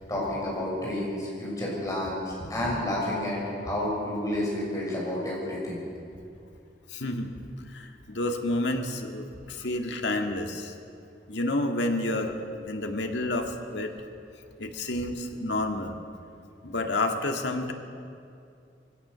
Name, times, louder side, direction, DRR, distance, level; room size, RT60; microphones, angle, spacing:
voice 1, 0.1-5.8, left 1 dB, 20° left, -4 dB, 6.4 m, -30 dB
voice 2, 6.9-7.3 7.7-10.7 11.3-12.4 12.7-13.9 14.6-16.0 16.6-17.7, left 2 dB, 90° left, 4 dB, 2.0 m, -29 dB
23.0 x 16.5 x 6.9 m, 2.6 s
head